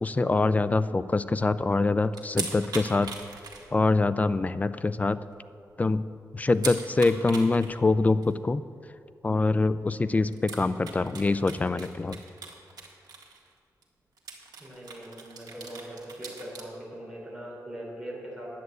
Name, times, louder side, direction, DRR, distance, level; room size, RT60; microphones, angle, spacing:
voice 1, 0.0-3.1 3.7-5.2 5.8-6.0 6.3-8.6 9.2-12.2, left 3 dB, 20° left, 13 dB, 0.4 m, -24 dB
sound 1, 2.1-4.1 4.4-4.5 5.0-5.1 5.3-5.4 6.5-7.8 8.2-8.3 9.7-9.8 10.3-13.5 13.8-13.9 14.2-16.6, right 4 dB, 75° right, 1.8 m, -40 dB
voice 2, 14.6-18.5, right 1 dB, 10° right, -5 dB, 3.7 m, -41 dB
10.5 x 9.4 x 7.9 m, 2.3 s
wide cardioid pair, 155°, 7 cm